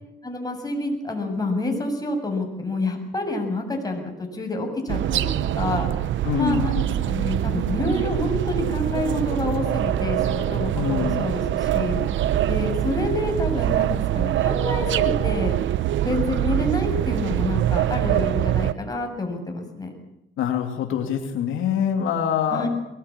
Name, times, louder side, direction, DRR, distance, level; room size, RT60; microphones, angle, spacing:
voice 1, 0.2-5.9 6.3-12.0 12.5-15.6 16.0-19.9 22.5-22.7, left 2 dB, 20° left, 2 dB, 7.5 m, -28 dB
sound 1, 4.9-18.7, right 12 dB, 75° right, 0.9 m, -24 dB
voice 2, 6.2-6.7 10.7-11.3 20.4-22.7, left 8 dB, 85° left, 5 dB, 2.6 m, -24 dB
22.5 x 19.5 x 8.8 m, 0.86 s
cardioid pair, 90°, 20 cm